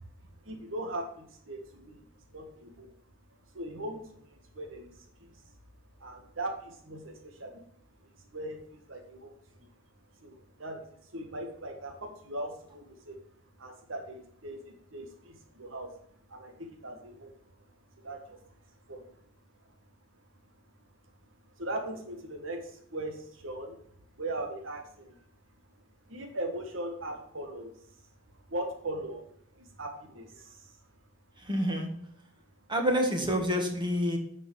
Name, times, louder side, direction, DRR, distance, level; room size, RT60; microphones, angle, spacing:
voice 1, 0.4-2.0 2.3-2.9 3.5-4.3 4.5-4.9 5.2-5.4 6.0-7.7 8.0-9.7 10.2-10.8 11.1-13.2 13.6-15.9 16.3-17.3 18.0-18.4 18.9-19.0 21.6-23.8 24.2-25.2 26.1-27.7 28.5-29.2 29.5-30.7, right 1 dB, 85° right, 3 dB, 1.7 m, -39 dB
voice 2, 31.4-31.9 32.7-34.2, equal, 25° right, 3 dB, 1.7 m, -27 dB
9.7 x 5.3 x 6.2 m, 0.67 s
head